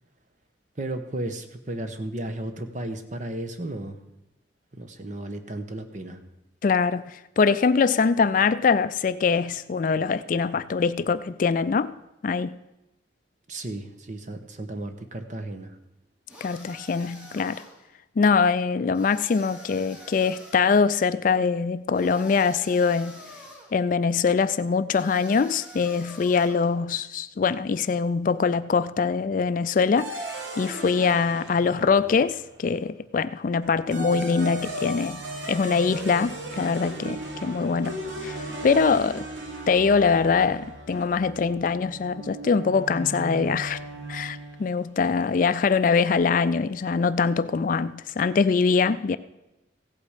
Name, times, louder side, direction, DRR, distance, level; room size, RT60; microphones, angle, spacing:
voice 1, 0.8-4.0 4.7-6.2 13.5-15.7, right 1 dB, 40° right, 1.0 m, -34 dB
voice 2, 6.6-11.9 12.2-12.6 16.4-17.6 18.2-23.2 23.7-35.2 35.5-39.3 39.7-43.8 44.1-49.2, left 5 dB, 45° left, 0.3 m, -23 dB
sound 1, 16.3-17.9 18.9-20.7 21.9-23.8 24.9-26.7, left 1 dB, 5° right, 1.9 m, -46 dB
sound 2, 30.0-32.5 33.6-44.7, right 1 dB, 75° right, 1.7 m, -36 dB
15.5 x 8.4 x 5.0 m
head